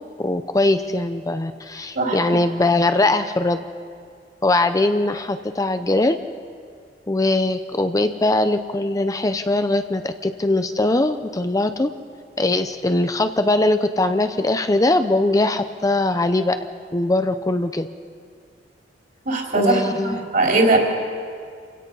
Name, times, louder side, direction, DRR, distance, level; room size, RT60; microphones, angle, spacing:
voice 1, 0.2-3.6 4.4-6.2 7.1-11.9 12.4-16.6 16.9-17.9 19.5-20.3, left 2 dB, 20° left, 9 dB, 0.6 m, -21 dB
voice 2, 2.0-2.4 19.3-20.8, right 2 dB, 50° right, 0 dB, 3.8 m, -20 dB
28.5 x 17.0 x 5.4 m, 2.2 s
head